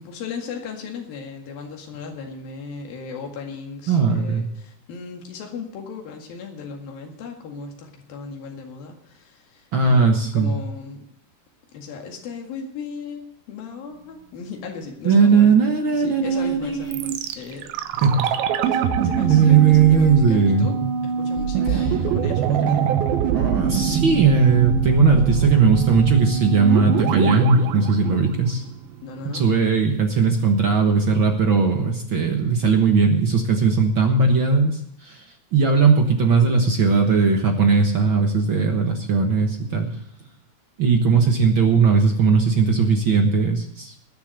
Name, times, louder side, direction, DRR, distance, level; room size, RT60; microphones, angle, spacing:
voice 1, 0.0-10.1 10.3-11.1 11.7-15.6 16.0-17.7 18.0-18.2 18.6-20.8 21.0-22.9 29.0-29.5, left 5 dB, 75° left, 2 dB, 3.8 m, -36 dB
voice 2, 3.9-4.4 9.7-10.5 15.0-17.2 18.0-18.3 19.3-20.6 21.7-21.8 23.3-28.6 29.3-35.2 35.5-40.0 40.8-43.9, right 5 dB, 60° right, 3 dB, 1.3 m, -18 dB
sound 1, 16.9-28.9 29.2-29.3, right 8 dB, 85° right, 2.8 m, -23 dB
20.0 x 7.3 x 6.5 m, 0.70 s
omnidirectional pair, 4.2 m